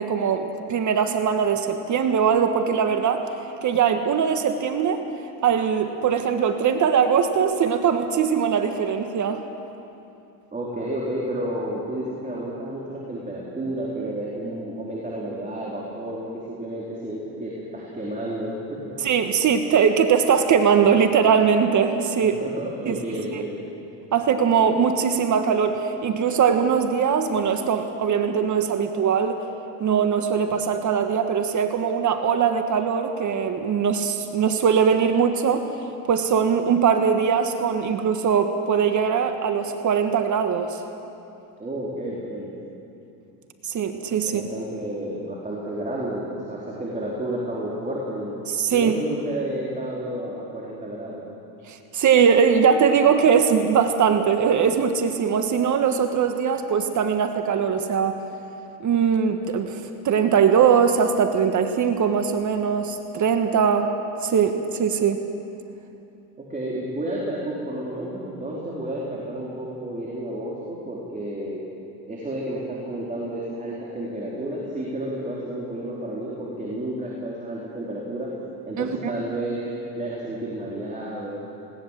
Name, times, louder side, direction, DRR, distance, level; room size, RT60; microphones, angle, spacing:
voice 1, 0.0-3.3 3.6-5.0 5.4-9.4 19.0-22.4 22.9-23.0 23.3-23.4 24.1-29.4 29.8-35.7 36.1-40.8 43.6-44.4 48.5-49.0 51.7-58.2 58.8-63.9 64.2-65.2 78.8-79.1, right 7 dB, 40° right, 7 dB, 1.5 m, -21 dB
voice 2, 10.5-18.9 22.2-23.5 41.6-42.5 44.2-48.4 48.7-51.2 66.4-71.6 72.1-78.3 78.7-81.4, right 1 dB, 15° right, -5 dB, 4.4 m, -31 dB
20.0 x 18.5 x 7.7 m, 2.7 s
supercardioid pair, 95°, 45 cm